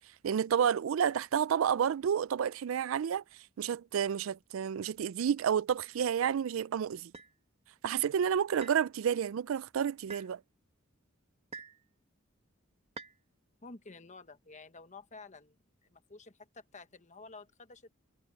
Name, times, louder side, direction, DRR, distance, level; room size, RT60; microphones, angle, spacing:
voice 1, 0.2-3.2 3.6-7.1 7.8-10.4, right 8 dB, 75° right, 0.4 m, -30 dB
sound 1, 7.1-7.3 8.6-8.9 10.1-10.3 11.5-11.8 13.0-13.2, right 4 dB, 30° right, 1.6 m, -46 dB
voice 2, 13.6-15.6 15.9-17.9, left 3 dB, 35° left, 1.2 m, -51 dB
head